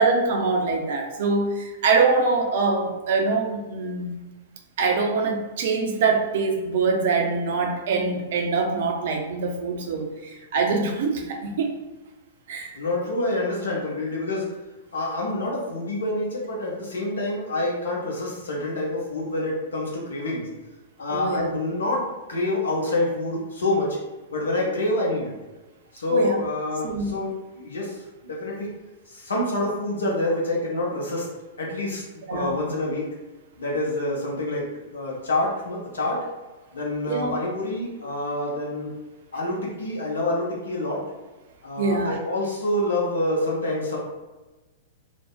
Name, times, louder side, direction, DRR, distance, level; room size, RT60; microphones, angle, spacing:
voice 1, 0.0-4.2 4.8-11.7 12.5-12.8 21.1-21.5 26.1-26.4 26.8-27.2 32.3-32.5 37.1-37.4 41.8-42.2, right 4 dB, 60° right, 2 dB, 0.4 m, -24 dB
voice 2, 12.7-14.6 14.9-20.5 21.0-24.0 24.3-25.3 25.9-28.7 29.1-31.3 31.6-32.0 32.3-33.1 33.6-36.2 36.7-39.0 39.3-41.0 41.6-44.0, left 2 dB, 75° left, -3 dB, 0.7 m, -27 dB
2.5 x 2.1 x 2.3 m, 1.1 s
figure-of-eight pair, 105°, 0 cm